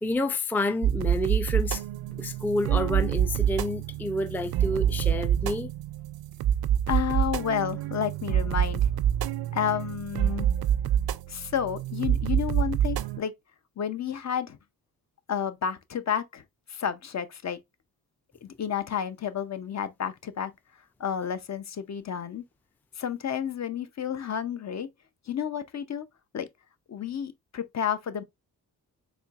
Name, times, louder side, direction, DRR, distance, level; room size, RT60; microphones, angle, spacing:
voice 1, 0.0-1.8 2.1-5.7, left 1 dB, 5° left, 0.4 m, -29 dB
sound 1, 0.8-13.2, right 10 dB, 75° right, 0.5 m, -27 dB
voice 2, 6.9-8.9 9.5-10.6 11.3-13.3 13.8-14.6 15.3-16.4 16.7-17.6 18.4-20.5 21.0-22.4 23.0-24.9 25.3-26.1 26.3-26.5 26.9-28.2, left 8 dB, 50° left, 0.6 m, -31 dB
4.3 x 3.0 x 2.3 m
cardioid pair, 80°, 37 cm